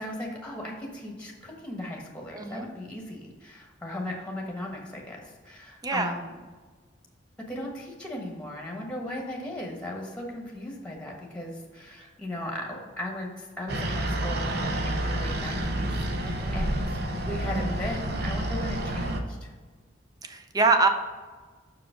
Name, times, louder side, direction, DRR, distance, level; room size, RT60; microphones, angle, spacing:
voice 1, 0.0-6.3 7.5-19.5, left 1 dB, 5° left, 0 dB, 1.2 m, -37 dB
voice 2, 2.3-2.7 5.8-6.1 16.2-16.6 20.2-20.9, right 3 dB, 20° right, 6 dB, 0.6 m, -25 dB
sound 1, 13.7-19.2, right 1 dB, 60° right, 0.8 m, -29 dB
6.5 x 4.8 x 5.0 m, 1.4 s
head